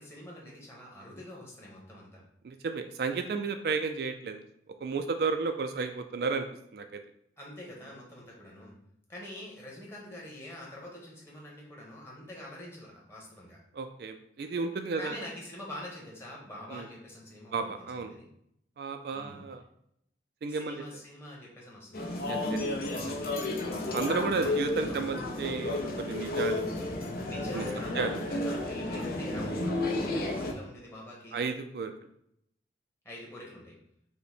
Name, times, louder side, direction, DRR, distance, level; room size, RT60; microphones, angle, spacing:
voice 1, 0.0-2.2 7.4-8.8 9.1-13.6 15.0-18.3 19.1-19.4 20.5-22.0 23.6-24.0 24.4-25.4 27.2-31.4 33.0-33.8, left 1 dB, 15° left, -4 dB, 1.2 m, -45 dB
voice 2, 2.4-4.4 4.8-6.5 6.7-6.9 13.7-15.2 16.7-16.9 17.5-18.1 18.8-19.6 20.4-20.8 22.3-22.6 22.9-23.2 23.9-26.7 27.5-27.6 28.0-28.2 31.3-31.9, right 4 dB, 60° right, 6 dB, 0.3 m, -32 dB
sound 1, 21.9-30.5, left 2 dB, 55° left, 0.7 m, -32 dB
5.4 x 2.2 x 4.2 m, 0.73 s
head